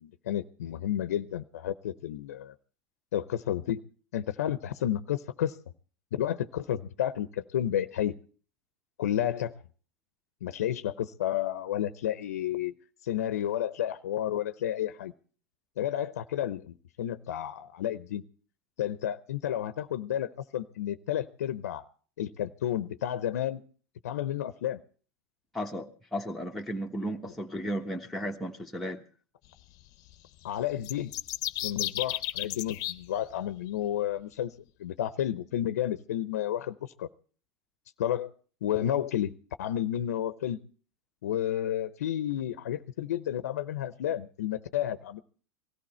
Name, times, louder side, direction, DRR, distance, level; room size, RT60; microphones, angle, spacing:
voice 1, 0.0-2.5 3.1-3.8 4.1-5.6 6.1-8.1 9.0-9.5 10.4-12.7 13.0-15.1 15.8-18.2 18.8-21.8 22.2-23.6 24.0-24.8 30.4-31.1 31.6-34.5 34.8-37.1 38.0-38.3 38.6-40.6 41.2-45.2, left 11 dB, 85° left, 13 dB, 0.7 m, -31 dB
voice 2, 25.5-29.0, equal, ahead, -2 dB, 1.2 m, -34 dB
sound 1, 30.8-32.9, left 16 dB, 50° left, 0.8 m, -33 dB
19.5 x 14.5 x 4.3 m, 0.41 s
supercardioid pair, 115°, 8 cm